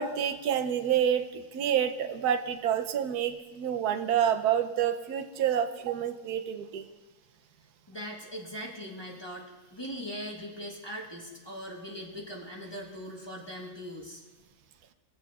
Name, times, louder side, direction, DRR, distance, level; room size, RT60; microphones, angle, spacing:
voice 1, 0.0-6.8 9.9-10.0, right 9 dB, 80° right, 7 dB, 1.1 m, -28 dB
voice 2, 7.9-14.2, equal, 20° left, -3 dB, 1.0 m, -40 dB
22.0 x 7.7 x 2.3 m, 1.2 s
omnidirectional pair, 1.7 m